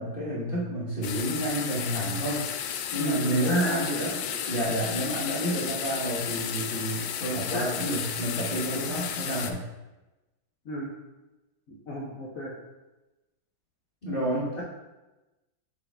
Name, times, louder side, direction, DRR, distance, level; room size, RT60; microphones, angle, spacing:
voice 1, 0.0-2.4 2.9-4.2 4.5-9.6 14.0-14.6, right 1 dB, 30° left, -7 dB, 1.5 m, -29 dB
sound 1, 1.0-9.5, left 9 dB, 75° left, 1.0 m, -33 dB
voice 2, 3.0-4.3 7.5-7.6 10.6-10.9 11.7-12.5, equal, 50° left, -5 dB, 1.3 m, -33 dB
6.6 x 4.9 x 3.6 m, 1.0 s
omnidirectional pair, 2.2 m